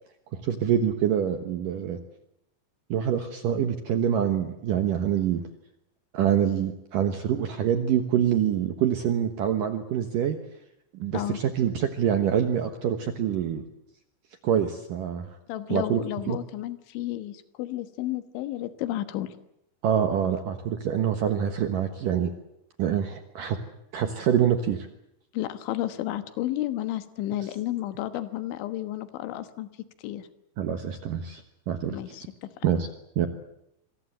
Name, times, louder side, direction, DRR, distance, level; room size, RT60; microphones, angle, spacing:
voice 1, 0.3-2.0 2.9-5.4 6.1-10.4 10.9-13.6 14.4-15.4 15.7-16.4 19.8-22.3 22.8-23.6 23.9-24.9 30.6-32.0 32.6-32.9 33.2-33.3, right 9 dB, 70° right, 8 dB, 2.2 m, -25 dB
voice 2, 15.5-19.4 25.3-29.7 30.0-30.3 31.9-32.6, left 14 dB, 80° left, 11 dB, 3.7 m, -32 dB
26.0 x 22.0 x 8.0 m, 0.80 s
omnidirectional pair, 5.4 m